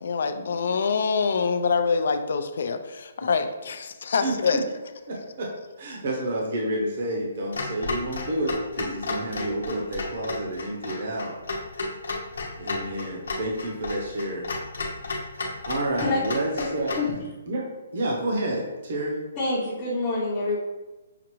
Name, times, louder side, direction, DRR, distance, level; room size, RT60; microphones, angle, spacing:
voice 1, 0.0-4.6, left 5 dB, 55° left, 8 dB, 0.3 m, -25 dB
voice 2, 4.2-4.6 5.1-5.5 5.8-11.3 12.6-14.5 15.2-15.3 15.7-16.9 17.5-17.6 17.9-19.2, right 1 dB, 45° right, -1 dB, 0.7 m, -29 dB
Clock, 7.5-17.1, left 3 dB, 75° left, 0.8 m, -33 dB
voice 3, 19.4-20.6, left 2 dB, 20° left, -7 dB, 0.7 m, -26 dB
5.8 x 2.5 x 3.0 m, 1.1 s
hypercardioid pair, 175°, 0 cm